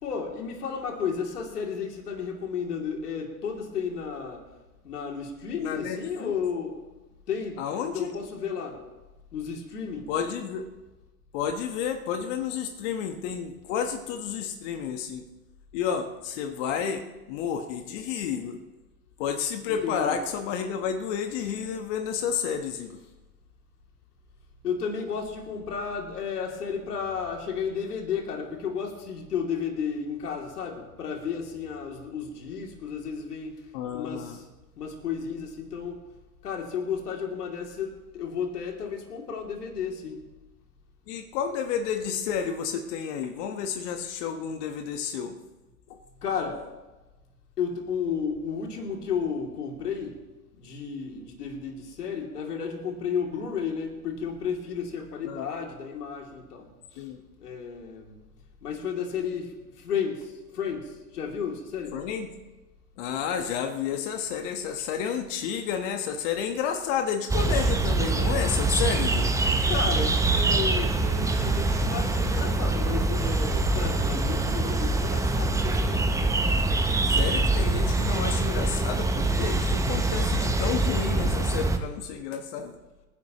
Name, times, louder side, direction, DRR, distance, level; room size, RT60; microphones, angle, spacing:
voice 1, 0.0-4.4 4.8-6.8 7.3-8.8 9.3-10.1 19.7-20.2 24.6-33.6 33.9-34.4 34.8-36.0 36.4-40.2 46.2-46.6 47.6-50.1 50.6-56.7 56.9-57.0 57.4-58.2 58.6-59.5 59.8-62.0 69.7-76.2, left 6 dB, 80° left, 1 dB, 3.0 m, -33 dB
voice 2, 5.6-6.4 7.6-8.1 10.1-10.6 11.3-15.2 15.7-18.6 19.2-23.0 33.7-34.4 41.1-45.4 45.9-46.0 55.2-55.5 57.0-57.2 61.9-62.3 63.0-69.3 77.1-82.8, left 7 dB, 50° left, 6 dB, 1.4 m, -31 dB
sound 1, 67.3-81.8, right 2 dB, 5° right, 0.9 m, -24 dB
26.0 x 10.5 x 3.1 m, 1.1 s
hypercardioid pair, 100°, 46 cm